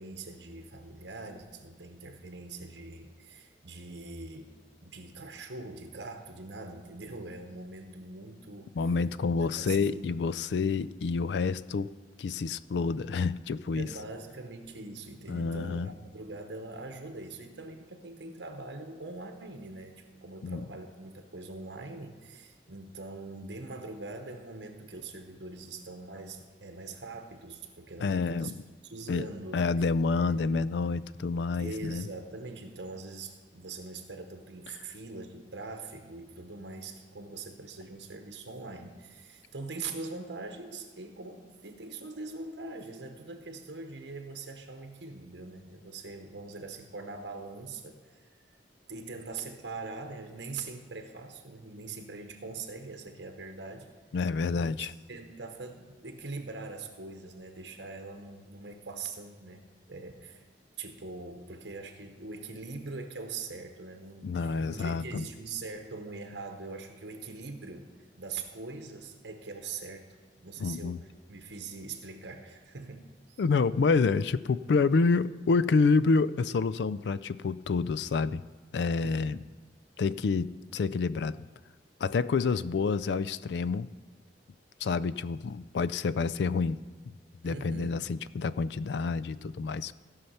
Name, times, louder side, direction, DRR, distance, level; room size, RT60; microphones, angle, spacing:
voice 1, 0.0-8.8 9.4-10.2 13.7-28.5 28.8-29.6 30.2-30.4 31.6-48.3 48.9-54.0 54.5-60.5 60.8-67.9 68.2-70.1 70.4-73.4 79.0-79.3 87.4-88.0, right 3 dB, 75° right, 5 dB, 1.0 m, -42 dB
voice 2, 8.8-11.9 12.2-13.9 15.3-15.9 20.4-20.6 28.0-28.6 29.1-29.3 29.5-32.0 54.1-54.9 64.2-65.2 70.6-71.0 73.4-78.4 78.7-79.4 80.0-81.4 82.0-83.9 84.8-86.8 87.4-89.9, left 4 dB, 70° left, 17 dB, 0.4 m, -28 dB
15.5 x 5.7 x 5.7 m, 1.3 s
head